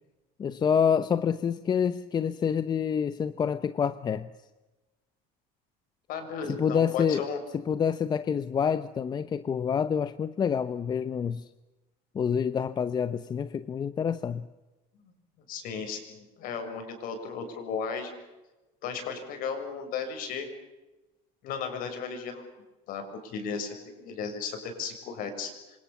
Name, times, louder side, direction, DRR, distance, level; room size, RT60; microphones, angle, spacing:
voice 1, 0.4-4.3 6.5-7.2 7.7-11.5 12.1-14.5, left 7 dB, 25° left, 13 dB, 0.8 m, -27 dB
voice 2, 6.1-7.4 15.0-15.1 15.5-18.1 18.8-20.5 21.4-22.4 22.9-25.8, left 6 dB, 55° left, 6 dB, 6.9 m, -35 dB
28.0 x 25.5 x 7.1 m, 1.1 s
cardioid pair, 150°, 18 cm